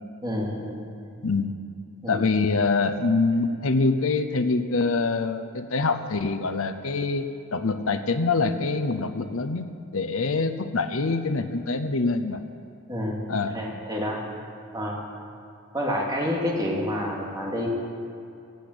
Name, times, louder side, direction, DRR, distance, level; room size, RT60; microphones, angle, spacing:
voice 1, 0.2-0.8 2.0-2.2 12.9-13.2 13.5-14.2 14.7-15.0 15.7-17.7, equal, 20° right, -3 dB, 2.4 m, -28 dB
voice 2, 2.1-9.7 9.9-12.4 13.3-13.6, left 3 dB, 70° left, 9 dB, 0.7 m, -25 dB
17.0 x 8.5 x 8.0 m, 2.6 s
head